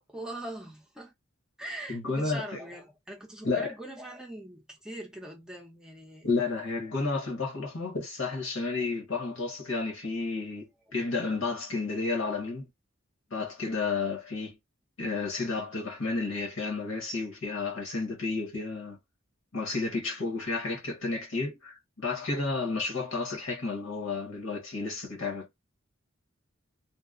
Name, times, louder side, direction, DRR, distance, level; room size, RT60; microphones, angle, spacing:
voice 1, 0.1-1.1 1.6-6.3 10.9-11.0, right 1 dB, 5° right, 0.7 m, -42 dB
voice 2, 1.9-2.6 3.4-3.7 6.2-12.7 13.3-14.6 15.0-19.0 19.5-25.5, left 3 dB, 75° left, 1.2 m, -31 dB
2.8 x 2.1 x 2.4 m
head